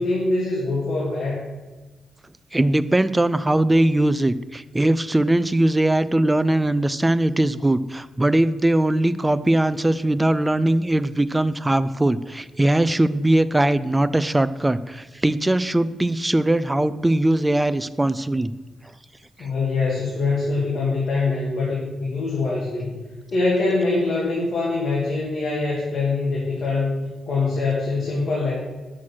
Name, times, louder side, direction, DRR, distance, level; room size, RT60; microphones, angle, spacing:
voice 1, 0.0-1.4 19.4-23.0 23.3-28.5, left 3 dB, 50° left, -5 dB, 1.8 m, -23 dB
voice 2, 2.5-18.5 19.4-19.5, right 1 dB, 10° right, 14 dB, 0.3 m, -20 dB
6.3 x 6.2 x 5.6 m, 1.2 s
cardioid pair, 115°, 0 cm